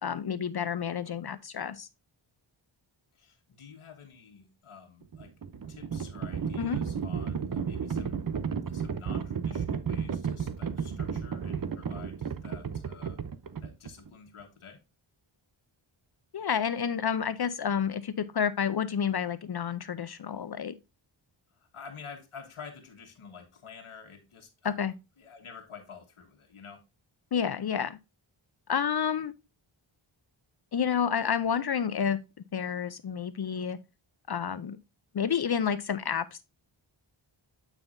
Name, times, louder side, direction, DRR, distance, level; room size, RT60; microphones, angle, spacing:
voice 1, 0.0-1.9 6.6-6.8 16.3-20.8 24.6-24.9 27.3-28.0 28.7-29.3 30.7-32.2 32.5-33.8 34.3-34.8 35.1-36.4, left 7 dB, 50° left, 0.6 m, -29 dB
voice 2, 3.1-5.3 5.7-8.2 8.7-13.2 13.6-14.8 21.5-24.8 25.2-26.8, left 6 dB, 85° left, 1.5 m, -49 dB
Livestock farm animals working animals, 5.0-14.1, right 7 dB, 45° right, 0.7 m, -33 dB
8.9 x 5.7 x 2.6 m
wide cardioid pair, 115°, 49 cm